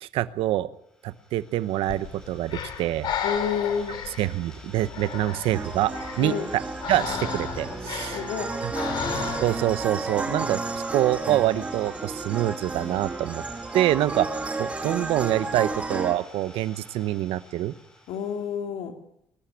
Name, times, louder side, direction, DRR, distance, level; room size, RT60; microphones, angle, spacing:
voice 1, 0.0-0.7 1.0-3.1 4.2-6.6 6.9-8.2 8.6-8.7 9.4-13.4 13.7-17.7, right 14 dB, 80° right, 14 dB, 1.0 m, -26 dB
Idling, 0.9-18.6, left 1 dB, 5° left, 4.9 m, -50 dB
Breathing, 1.9-9.8, left 7 dB, 50° left, 3.1 m, -34 dB
voice 2, 3.2-4.0 6.2-6.5 8.1-8.5 18.1-19.0, left 7 dB, 75° left, 5 dB, 3.3 m, -29 dB
sound 1, 5.5-16.2, right 3 dB, 15° right, 1.5 m, -32 dB
24.0 x 13.0 x 9.9 m, 0.75 s
cardioid pair, 180°, 9 cm